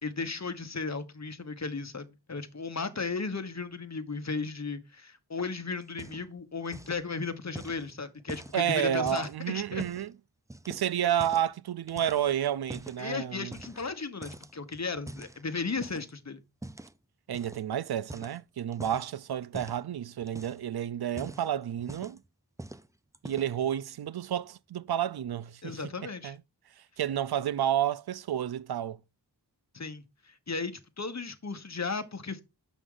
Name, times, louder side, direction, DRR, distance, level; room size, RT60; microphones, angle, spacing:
voice 1, 0.0-9.8 13.0-16.4 25.6-26.3 29.7-32.4, left 4 dB, 40° left, 1.1 m, -35 dB
sound 1, 5.8-6.4 6.7-7.1 7.6-10.1 10.5-11.5 11.9-13.0 13.5-14.0 14.2-16.1 16.6-16.9 17.3-17.6 18.0-19.1 19.5-19.8 20.2-20.7 21.0-22.3 22.6-22.9 23.1-23.6, right 1 dB, 10° right, 0.5 m, -45 dB
voice 2, 8.5-10.1 10.7-13.6 17.3-22.2 23.2-26.4 27.0-29.0, right 10 dB, 65° right, 0.5 m, -30 dB
8.2 x 6.0 x 3.8 m
wide cardioid pair, 60°, 41 cm